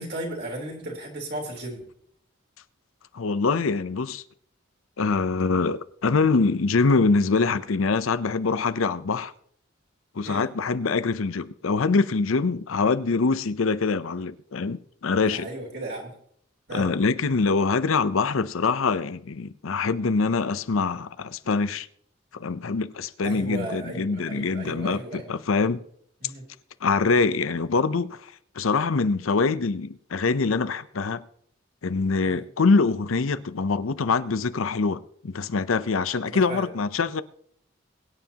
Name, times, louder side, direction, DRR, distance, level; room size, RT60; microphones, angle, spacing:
voice 1, 0.0-1.8 10.2-10.5 15.3-16.2 16.7-16.9 23.2-25.4 26.2-26.5 32.2-32.4 36.3-36.7, right 1 dB, 50° right, 3.5 m, -35 dB
voice 2, 3.1-4.2 5.0-9.3 10.1-15.5 16.7-21.9 22.3-25.8 26.8-31.2 31.8-37.2, left 4 dB, 90° left, 0.6 m, -24 dB
22.5 x 9.5 x 2.9 m
head